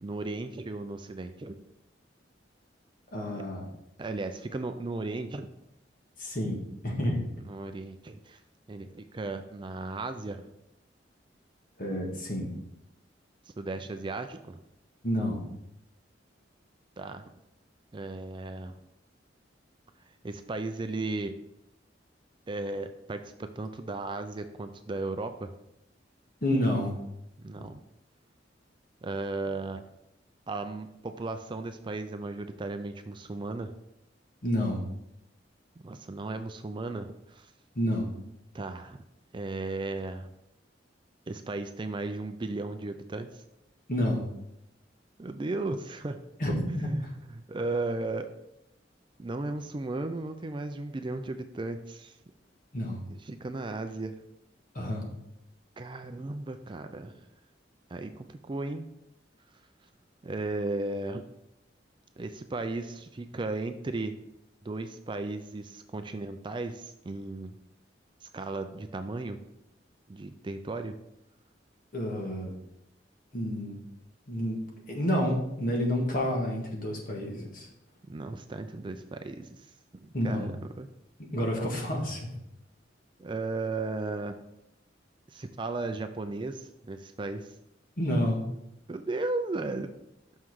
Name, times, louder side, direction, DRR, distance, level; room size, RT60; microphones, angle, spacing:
voice 1, 0.0-1.6 4.0-5.5 7.5-8.4 8.7-10.5 13.6-14.6 17.0-17.3 17.9-18.7 20.2-21.3 22.5-25.5 27.4-27.8 29.0-29.8 30.5-33.7 35.8-37.5 38.5-39.0 39.3-40.3 41.3-43.4 45.2-46.2 46.7-48.3 49.2-52.2 53.2-54.2 55.8-57.2 57.9-58.9 60.2-61.2 62.2-64.2 64.6-67.6 68.2-69.4 70.1-71.0 78.1-80.9 83.2-84.4 85.3-87.5 88.9-89.9, right 2 dB, 25° right, 8 dB, 0.4 m, -35 dB
voice 2, 3.1-3.7 6.2-7.3 11.8-12.5 15.0-15.4 26.4-26.9 34.4-34.8 37.7-38.1 43.9-44.2 46.4-47.0 52.7-53.0 54.7-55.1 71.9-72.5 73.3-73.8 74.3-74.6 74.9-77.7 80.1-80.5 81.3-82.3 88.0-88.4, equal, 50° left, 0 dB, 1.7 m, -29 dB
6.3 x 5.7 x 4.7 m, 0.84 s
head